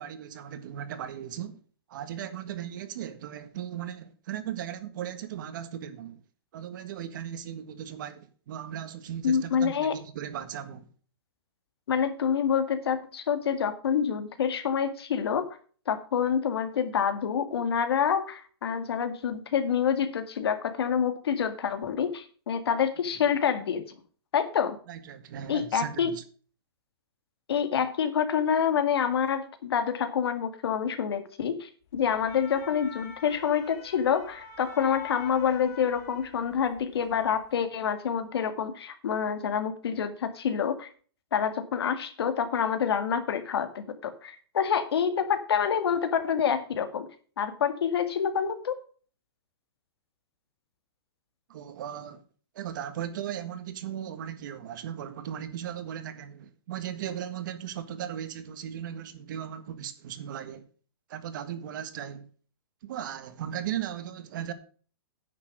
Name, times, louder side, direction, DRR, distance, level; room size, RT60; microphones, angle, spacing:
voice 1, 0.0-1.6 1.9-6.2 6.5-10.9 24.9-26.2 51.5-52.2 52.5-60.6 61.1-62.3 62.8-64.5, right 10 dB, 50° right, 1.6 m, -37 dB
voice 2, 9.2-9.9 11.9-15.5 15.9-23.8 24.3-24.8 25.5-26.1 27.5-40.9 41.3-47.1 47.4-48.8, left 7 dB, 75° left, 2.0 m, -27 dB
sound 1, 32.0-36.8 37.1-37.4, left 7 dB, 35° left, 4.3 m, -45 dB
9.9 x 6.7 x 6.3 m
hypercardioid pair, 160°, 13 cm